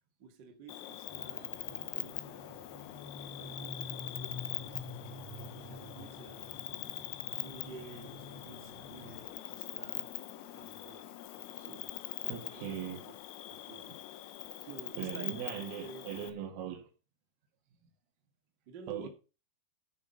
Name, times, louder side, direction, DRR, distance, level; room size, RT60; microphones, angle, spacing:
voice 1, 0.2-2.8 3.2-5.1 5.5-6.9 7.3-10.1 10.5-11.1 11.5-13.1 13.5-13.9 14.6-16.4 18.6-19.1, right 4 dB, 45° right, 1.3 m, -52 dB
Cricket, 0.7-16.3, left 15 dB, 90° left, 3.7 m, -43 dB
sound 1, 1.1-9.3, left 1 dB, 65° right, 1.3 m, -48 dB
voice 2, 12.3-13.0 15.0-16.9 18.9-19.1, right 9 dB, 80° right, 4.6 m, -39 dB
13.5 x 6.3 x 5.5 m
omnidirectional pair, 5.7 m